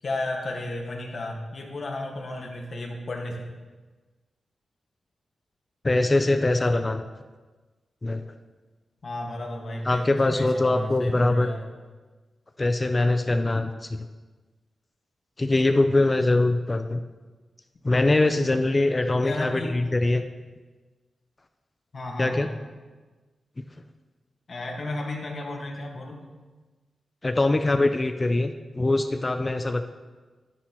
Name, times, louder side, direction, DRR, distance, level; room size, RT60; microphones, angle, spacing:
voice 1, 0.0-3.5 9.0-11.6 19.2-19.8 21.9-22.6 24.5-26.3, left 1 dB, 45° left, 0 dB, 1.6 m, -33 dB
voice 2, 5.8-7.1 8.0-8.2 9.9-11.5 12.6-14.1 15.4-17.0 17.8-20.3 22.2-22.5 27.2-29.8, left 2 dB, 25° left, 8 dB, 0.4 m, -23 dB
11.5 x 10.0 x 3.0 m, 1.3 s
wide cardioid pair, 140°, 0 cm